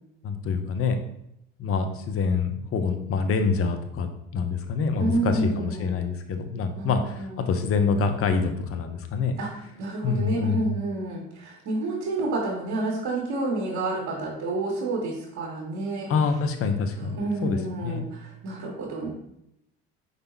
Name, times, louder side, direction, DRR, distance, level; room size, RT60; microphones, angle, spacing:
voice 1, 0.2-1.0 1.6-9.3 10.0-10.8 16.1-18.0, left 5 dB, 45° left, 6 dB, 0.9 m, -26 dB
voice 2, 5.0-5.9 6.8-7.5 9.4-9.5 9.8-16.1 17.1-19.1, right 2 dB, 60° right, -1 dB, 1.8 m, -29 dB
5.1 x 4.2 x 4.5 m, 0.76 s
hypercardioid pair, 70°, 32 cm